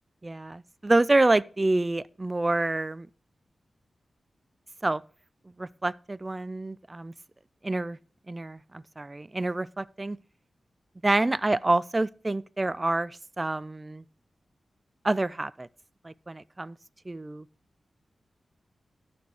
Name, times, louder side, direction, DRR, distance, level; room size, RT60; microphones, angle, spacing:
voice 1, 0.2-3.1 4.8-5.0 5.6-7.1 7.6-8.0 8.3-10.2 11.0-14.0 15.0-15.7 16.0-16.8 17.1-17.4, right 2 dB, 25° right, 0.3 m, -27 dB
12.5 x 4.4 x 4.8 m
wide cardioid pair, 100°, 0 cm